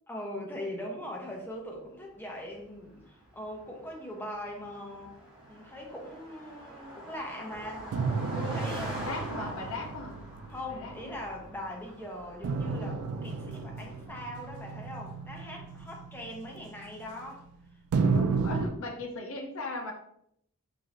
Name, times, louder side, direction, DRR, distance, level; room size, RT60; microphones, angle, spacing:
voice 1, 0.1-5.1 5.5-7.9 8.3-9.6 10.5-17.4, left 1 dB, 10° left, -1 dB, 0.5 m, -41 dB
Car passing by, 2.2-15.9, right 1 dB, 20° right, 0.8 m, -45 dB
sound 1, 7.9-11.6 12.4-17.4 17.9-18.7, right 4 dB, 75° right, 0.3 m, -33 dB
voice 2, 9.1-10.2 10.7-11.2 18.0-19.9, left 2 dB, 65° left, 2 dB, 0.6 m, -38 dB
3.2 x 2.6 x 2.4 m, 0.72 s
head